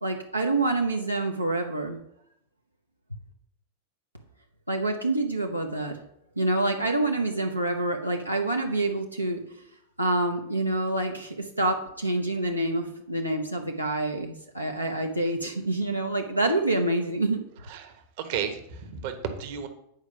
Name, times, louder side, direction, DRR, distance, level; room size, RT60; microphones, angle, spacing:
voice 1, 0.0-2.0 4.7-6.0 6.4-9.4 10.0-17.4, right 2 dB, 85° right, 2 dB, 0.7 m, -27 dB
voice 2, 17.7-19.7, right 8 dB, 50° right, 7 dB, 1.1 m, -33 dB
9.0 x 4.8 x 5.7 m, 0.76 s
figure-of-eight pair, 90°, 0 cm